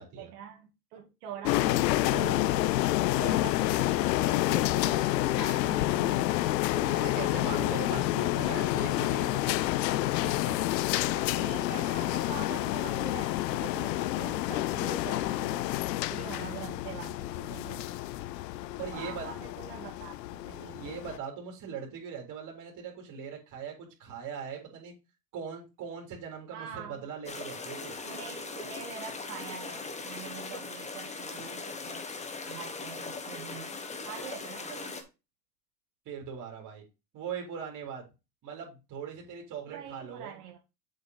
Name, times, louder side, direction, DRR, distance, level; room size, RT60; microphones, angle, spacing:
voice 1, 0.1-2.7 3.1-6.7 7.9-8.1 11.1-15.7 16.1-17.9 18.7-20.9 26.5-27.1 28.0-32.1 32.4-35.0 39.7-40.6, right 8 dB, 65° right, 1.9 m, -44 dB
sound 1, 1.5-21.2, left 16 dB, 80° left, 0.7 m, -29 dB
Wind instrument woodwind instrument, 5.1-9.6, left 19 dB, 40° left, 0.5 m, -48 dB
voice 2, 6.7-9.6 10.2-10.6 18.8-19.4 20.6-24.9 25.3-28.0 36.1-36.8 37.1-38.0 38.4-40.4, right 6 dB, 40° right, 3.5 m, -40 dB
sound 2, 27.2-35.0, left 4 dB, 15° left, 1.3 m, -40 dB
7.5 x 5.3 x 4.0 m
supercardioid pair, 120°, 49 cm